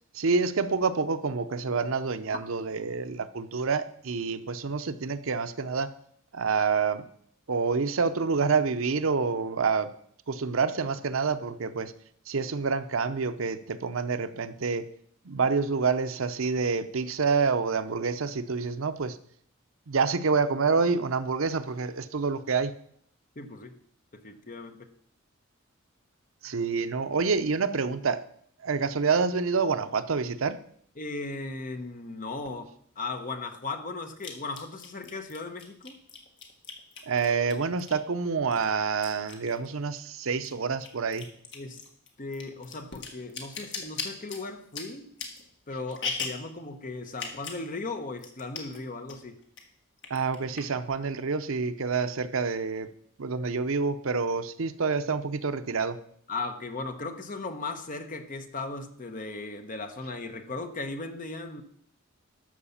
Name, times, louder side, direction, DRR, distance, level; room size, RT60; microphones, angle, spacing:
voice 1, 0.1-5.9 6.3-7.1 7.5-9.9 10.3-11.9 12.3-14.8 15.3-19.2 19.9-22.7 26.4-28.2 28.6-30.6 37.1-41.3 50.1-52.9 53.2-56.0, right 4 dB, 75° right, 0.7 m, -27 dB
voice 2, 23.4-23.8 24.1-24.9 31.0-36.0 41.5-41.9 42.2-45.1 45.7-49.4 56.3-61.6, left 3 dB, 40° left, 1.0 m, -37 dB
sound 1, 32.5-32.6 34.2-38.1 38.5-40.1 40.3-46.5 47.1-47.7 47.9-48.0 48.2-48.8 49.1-49.6 50.0-50.9, left 4 dB, 55° left, 1.7 m, -39 dB
12.5 x 4.9 x 7.1 m
head